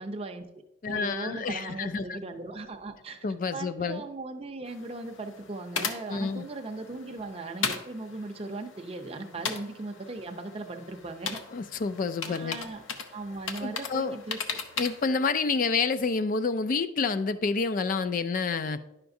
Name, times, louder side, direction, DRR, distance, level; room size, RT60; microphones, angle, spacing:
voice 1, 0.0-3.2 3.5-11.4 12.3-12.8 13.1-14.4, right 2 dB, 30° right, 4 dB, 0.6 m, -38 dB
voice 2, 0.8-2.2 3.2-4.0 6.1-6.4 11.5-12.6 13.6-14.2 14.8-18.8, left 4 dB, 45° left, 12 dB, 0.4 m, -28 dB
sound 1, 4.7-15.1, left 5 dB, 75° left, 0.7 m, -38 dB
10.0 x 5.8 x 2.6 m, 0.89 s
head